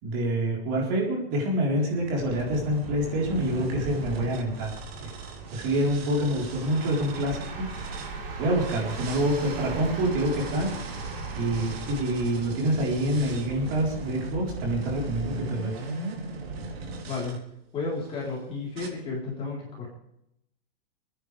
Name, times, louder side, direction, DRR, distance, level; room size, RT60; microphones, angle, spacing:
voice 1, 0.0-4.7 5.0-5.1 5.5-8.0 8.4-10.7 11.3-15.7, right 1 dB, 35° right, -2 dB, 4.2 m, -27 dB
sound 1, 1.8-14.5, right 3 dB, 65° right, 4.1 m, -39 dB
sound 2, 2.3-8.1 8.6-17.4 18.0-18.3 18.7-18.9, right 3 dB, 80° right, 3.3 m, -39 dB
voice 2, 17.0-17.4 17.7-19.9, left 3 dB, 20° left, -4 dB, 3.9 m, -32 dB
28.0 x 10.0 x 3.4 m, 0.78 s
supercardioid pair, 170°, 31 cm